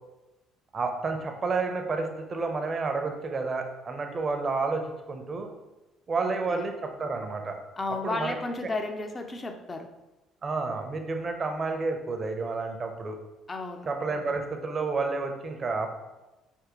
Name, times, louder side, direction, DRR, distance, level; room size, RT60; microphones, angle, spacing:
voice 1, 0.7-5.5 6.1-7.6 8.0-8.3 10.4-13.2 13.9-15.9, right 3 dB, 40° right, 4 dB, 0.7 m, -30 dB
voice 2, 6.2-6.6 7.8-9.9 13.5-13.9, left 3 dB, 30° left, 6 dB, 0.6 m, -33 dB
4.7 x 3.5 x 3.1 m, 1.0 s
hypercardioid pair, 55°, 0 cm